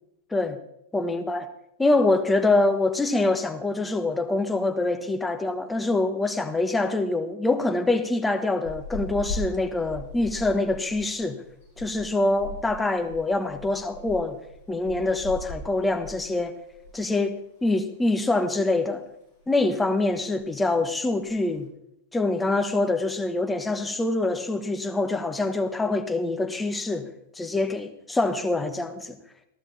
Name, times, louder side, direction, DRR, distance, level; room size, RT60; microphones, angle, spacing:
voice 1, 0.9-1.5 1.8-11.4 11.8-14.4 14.7-16.5 16.9-19.0 19.5-21.7 22.1-27.1 27.3-29.2, left 2 dB, 10° left, 7 dB, 1.3 m, -25 dB
sound 1, 8.6-17.2 17.4-17.6 18.0-18.9 19.2-19.6 19.8-19.9 20.1-20.6 21.1-21.6, equal, 55° left, 7.0 m, -39 dB
14.5 x 12.5 x 4.2 m, 0.79 s
figure-of-eight pair, 95°, 0 cm